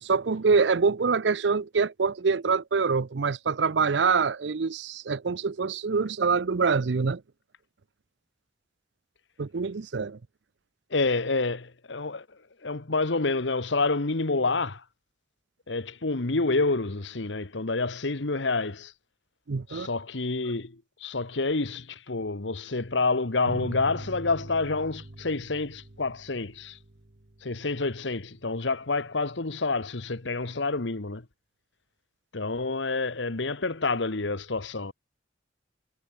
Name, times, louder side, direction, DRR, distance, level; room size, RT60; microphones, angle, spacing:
voice 1, 0.0-7.2 9.4-10.2 19.5-19.9, right 5 dB, 70° right, 0.6 m, -25 dB
voice 2, 10.9-12.3 12.6-14.8 15.7-18.9 19.7-26.8 27.4-31.3 32.3-34.9, left 3 dB, 80° left, 1.3 m, -28 dB
sound 1, 23.5-28.6, right 1 dB, 45° right, 1.2 m, -43 dB
head